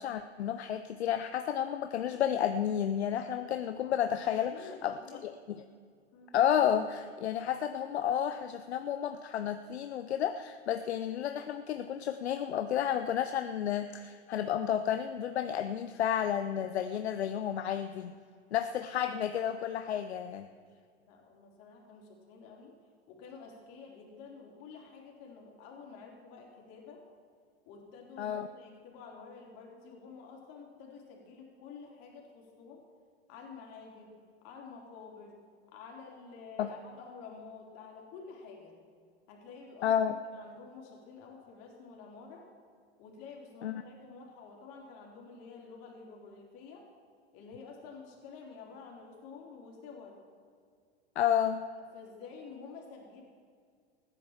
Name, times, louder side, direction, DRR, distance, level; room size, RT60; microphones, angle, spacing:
voice 1, 0.0-5.0 6.3-18.2 18.5-20.5 28.2-28.5 36.6-36.7 39.8-40.1 43.6-43.8 51.2-51.6, left 9 dB, 75° left, 9 dB, 0.7 m, -31 dB
voice 2, 3.8-5.2 6.1-6.3 21.1-22.7 23.1-27.0 27.7-32.8 33.3-34.1 34.4-35.4 35.7-38.8 39.3-42.5 43.0-46.9 47.3-50.2 51.8-53.2, left 5 dB, 50° left, -1 dB, 3.9 m, -50 dB
15.0 x 10.0 x 7.3 m, 2.1 s
hypercardioid pair, 90°, 32 cm